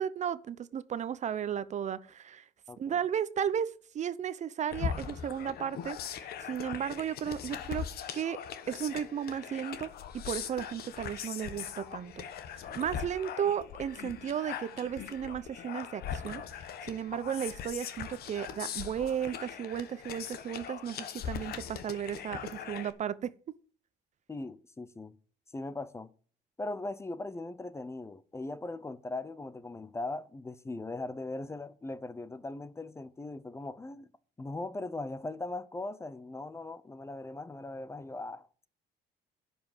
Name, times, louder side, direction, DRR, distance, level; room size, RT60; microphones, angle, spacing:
voice 1, 0.0-2.4 2.8-7.8 8.1-8.4 8.7-23.3, right 8 dB, 45° right, 0.7 m, -34 dB
voice 2, 2.7-3.0 24.3-25.2 25.5-26.1 26.6-34.1 34.4-38.5, left 2 dB, 15° left, 0.7 m, -39 dB
sound 1, 4.7-22.9, left 8 dB, 65° left, 1.4 m, -40 dB
11.0 x 5.6 x 7.3 m
cardioid pair, 110°, 17 cm